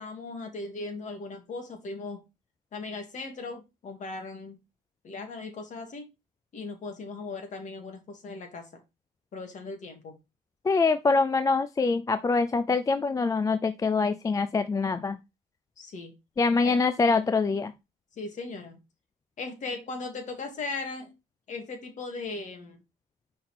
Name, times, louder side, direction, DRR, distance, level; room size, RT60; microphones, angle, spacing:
voice 1, 0.0-2.2 2.7-4.6 5.0-6.1 6.5-8.7 9.3-10.2 15.8-16.1 16.6-16.8 18.2-18.8 19.4-21.1 21.5-22.8, left 3 dB, 45° left, 2.1 m, -38 dB
voice 2, 10.7-15.2 16.4-17.7, left 4 dB, 20° left, 0.4 m, -24 dB
5.5 x 4.3 x 4.1 m
cardioid pair, 110°, 17 cm